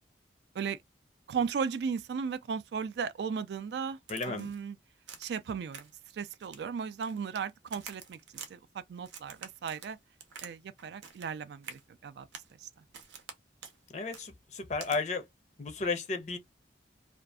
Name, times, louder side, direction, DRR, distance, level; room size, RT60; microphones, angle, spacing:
voice 1, 1.3-4.0 4.2-4.8 5.2-5.9 6.1-10.0 10.4-12.3 12.6-12.7, right 6 dB, 65° right, 0.3 m, -36 dB
voice 2, 4.1-4.5 13.9-15.2 15.6-16.4, left 4 dB, 40° left, 0.5 m, -33 dB
Crack, 4.1-4.6 5.1-5.4 5.7-6.1 6.4-7.4 7.7-8.5 9.0-10.5 10.8-11.3 11.6-11.8 12.3-12.5 12.9-13.4 13.6-13.8 14.1-14.3 14.8-15.0, right 6 dB, 85° right, 0.7 m, -47 dB
2.5 x 2.3 x 2.2 m
head